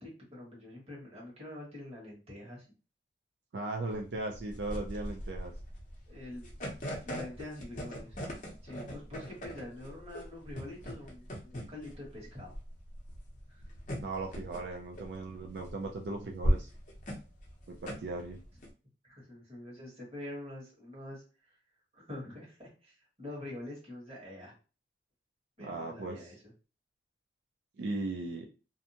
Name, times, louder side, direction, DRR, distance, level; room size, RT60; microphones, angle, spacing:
voice 1, 0.0-2.7 6.1-6.4 6.9-8.2 8.6-12.6 13.5-13.6 19.0-21.6 21.9-24.5 25.6-26.3, left 1 dB, 35° right, -4 dB, 1.3 m, -45 dB
voice 2, 3.5-5.5 14.0-16.7 17.7-18.4 25.6-26.3 27.8-28.5, right 2 dB, 75° right, 1 dB, 0.4 m, -37 dB
sound 1, 3.9-18.7, equal, 45° left, 0.7 m, -38 dB
2.6 x 2.1 x 2.7 m, 0.33 s
head